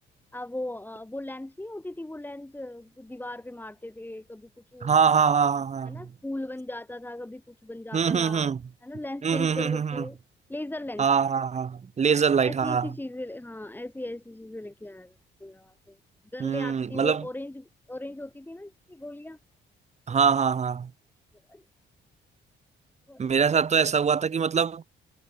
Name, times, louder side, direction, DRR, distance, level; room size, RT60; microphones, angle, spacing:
voice 1, 0.3-5.2 5.9-8.5 8.8-10.2 10.5-11.1 12.4-15.1 15.4-16.0 16.3-19.4 21.5-21.6 23.1-23.2, left 1 dB, 10° left, 4.0 m, -38 dB
voice 2, 4.8-6.1 7.9-8.6 9.2-10.0 11.0-12.9 16.4-17.2 20.1-20.9 23.2-24.9, right 6 dB, 35° right, 0.8 m, -24 dB
cardioid pair, 90°, 20 cm